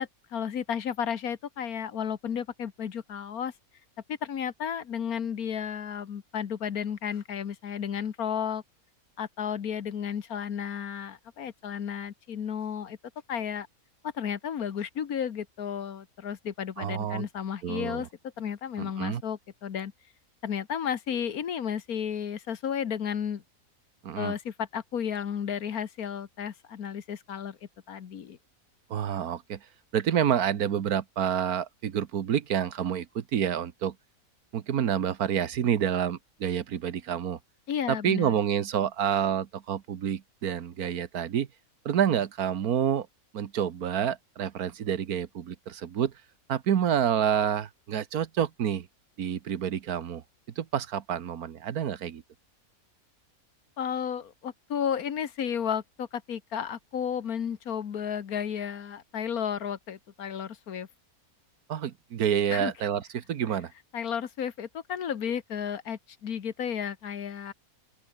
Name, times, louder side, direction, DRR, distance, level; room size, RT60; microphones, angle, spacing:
voice 1, 0.0-3.5 4.1-8.6 9.2-13.0 13.3-13.7 14.0-18.1 18.4-19.9 20.4-23.4 24.2-27.6 27.9-28.4 37.7-38.4 53.8-60.9 62.5-62.7 63.9-67.5, left 8 dB, 75° left, 1.7 m, -33 dB
voice 2, 16.8-17.3 17.6-18.1 18.8-19.2 24.0-24.4 28.9-29.7 29.9-33.9 34.5-37.4 37.9-41.5 41.8-43.1 43.3-46.1 46.5-48.9 49.2-50.2 50.6-52.2 61.7-63.7, right 9 dB, 80° right, 1.6 m, -28 dB
omnidirectional pair, 1.6 m